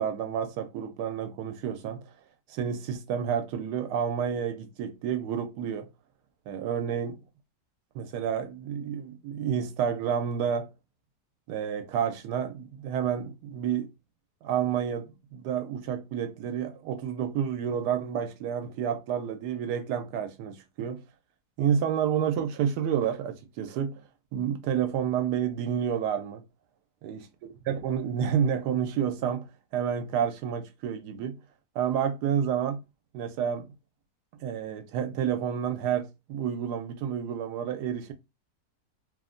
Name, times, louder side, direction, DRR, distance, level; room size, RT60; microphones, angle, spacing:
voice 1, 0.0-2.1 2.5-5.9 6.5-7.2 7.9-10.7 11.5-13.9 14.4-21.0 21.6-24.0 24.3-26.4 27.0-27.3 27.7-29.5 29.7-31.4 31.7-32.8 33.1-33.7 34.4-38.1, right 8 dB, 90° right, 1.2 m, -29 dB
3.1 x 2.1 x 2.4 m
omnidirectional pair, 1.7 m